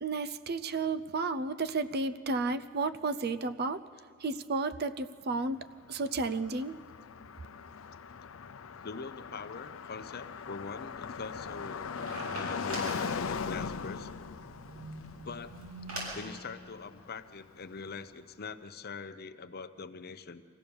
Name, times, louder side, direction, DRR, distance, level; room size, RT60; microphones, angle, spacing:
voice 1, 0.0-3.8 4.2-6.8, right 3 dB, 50° right, 12 dB, 0.6 m, -32 dB
Car passing by, 5.6-17.6, left 5 dB, 80° left, 0.6 m, -40 dB
voice 2, 8.8-11.9 12.3-14.1 15.2-15.6 16.1-20.4, left 4 dB, 50° left, 11 dB, 0.8 m, -43 dB
sound 1, 11.1-16.2, right 1 dB, 85° right, 7.2 m, -44 dB
24.0 x 16.0 x 7.1 m, 2.2 s
head